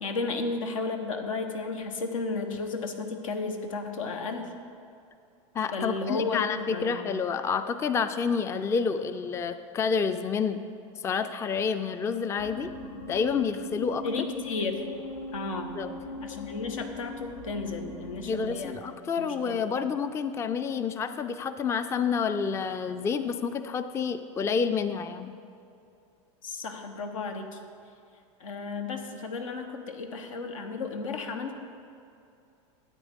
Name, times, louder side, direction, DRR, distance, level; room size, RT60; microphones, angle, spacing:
voice 1, 0.0-4.5 5.7-7.0 14.0-14.9 15.3-15.8 16.2-18.8 19.2-19.6 26.4-27.6 28.4-31.6, left 3 dB, 90° left, 5 dB, 1.1 m, -33 dB
voice 2, 5.5-10.6 11.0-12.7 13.1-14.0 15.8-15.9 18.3-25.3, left 6 dB, 15° left, 10 dB, 0.4 m, -29 dB
sound 1, 12.4-18.7, left 2 dB, 60° left, 1.4 m, -40 dB
13.0 x 8.8 x 3.6 m, 2.6 s
hypercardioid pair, 115°, 17 cm